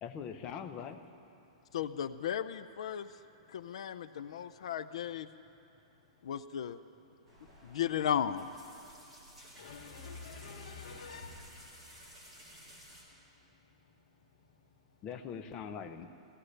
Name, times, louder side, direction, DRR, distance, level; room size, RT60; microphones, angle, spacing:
voice 1, 0.0-1.1 15.0-16.1, left 7 dB, 20° left, 7 dB, 0.6 m, -42 dB
voice 2, 1.7-3.1 3.5-5.3 6.2-6.8 7.6-8.5, left 9 dB, 60° left, 13 dB, 0.5 m, -35 dB
sound 1, 7.3-13.0, equal, ahead, 4.4 m, -55 dB
voice 3, 9.6-11.7, left 4 dB, 90° left, 1 dB, 2.3 m, -47 dB
23.0 x 17.5 x 3.3 m, 2.8 s
supercardioid pair, 175°, 4 cm